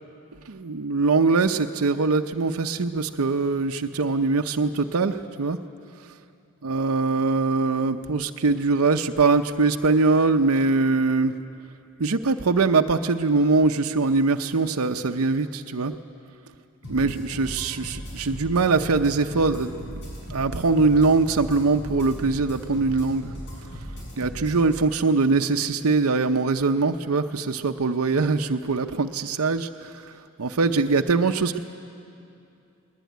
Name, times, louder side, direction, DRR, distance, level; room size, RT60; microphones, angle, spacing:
voice 1, 0.5-5.6 6.0-6.1 6.6-11.4 12.0-15.9 16.9-23.3 24.2-30.1 30.4-31.6, right 3 dB, 90° right, 6 dB, 0.7 m, -22 dB
sound 1, 16.8-24.6, equal, 55° left, 7.8 m, -38 dB
20.5 x 20.0 x 9.3 m, 2.6 s
head